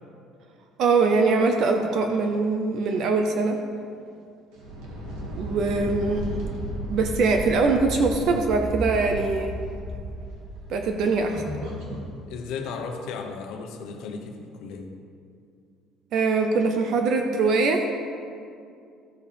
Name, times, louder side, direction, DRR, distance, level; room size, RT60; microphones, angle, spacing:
voice 1, 0.8-3.6 5.4-6.3 6.9-9.5 10.7-11.4 16.1-17.8, right 4 dB, 45° right, 5 dB, 0.6 m, -22 dB
sound 1, 4.5-12.1, right 1 dB, 70° right, 2.1 m, -36 dB
sound 2, 4.9-10.2, right 1 dB, 10° left, 1.2 m, -37 dB
voice 2, 12.3-14.9, left 5 dB, 65° left, 4 dB, 1.0 m, -35 dB
14.0 x 7.6 x 3.5 m, 2.4 s
cardioid pair, 175°, 0 cm